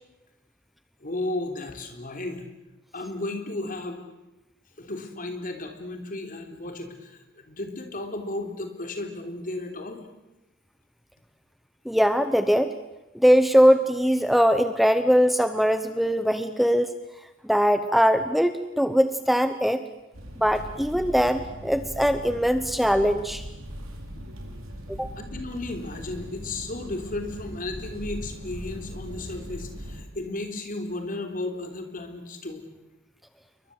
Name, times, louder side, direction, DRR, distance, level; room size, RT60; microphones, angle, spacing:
voice 1, 1.0-2.5 2.9-4.0 4.8-10.0 24.2-24.3 25.2-32.6, left 2 dB, 45° left, 5 dB, 3.5 m, -34 dB
voice 2, 11.9-12.7 13.2-16.9 17.5-19.8 20.4-23.4 25.0-25.1, equal, ahead, 10 dB, 0.8 m, -21 dB
sound 1, 20.1-30.0, equal, 85° right, 4.7 m, -39 dB
29.0 x 23.0 x 7.9 m, 1.0 s
head